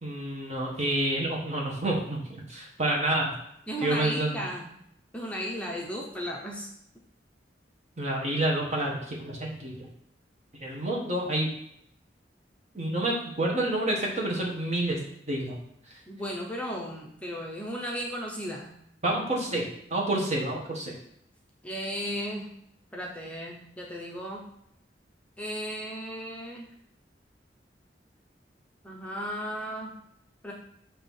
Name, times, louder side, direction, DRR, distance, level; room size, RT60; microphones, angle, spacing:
voice 1, 0.0-3.3 3.8-4.4 8.0-9.9 10.6-11.5 12.7-15.0 15.3-15.6 19.0-20.9, right 1 dB, 40° right, -2 dB, 1.5 m, -28 dB
voice 2, 3.7-4.7 5.1-6.7 16.1-18.7 21.6-22.5 22.9-24.4 25.4-26.7 28.8-29.9 30.4-30.5, equal, 5° left, -2 dB, 0.8 m, -35 dB
7.0 x 3.0 x 5.5 m, 0.74 s
head